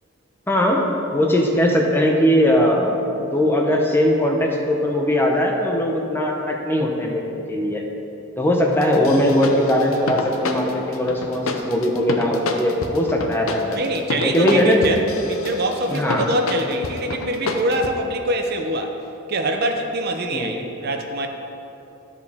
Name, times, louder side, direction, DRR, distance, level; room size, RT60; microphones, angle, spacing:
voice 1, 0.5-7.8 8.4-13.8 14.2-14.8 15.9-16.3 20.3-20.6, equal, 10° left, 0 dB, 0.7 m, -20 dB
sound 1, 8.8-17.9, left 3 dB, 75° left, 0.6 m, -29 dB
voice 2, 13.7-18.9 19.3-21.3, right 1 dB, 50° right, 4 dB, 0.6 m, -24 dB
12.5 x 4.8 x 3.5 m, 2.9 s
head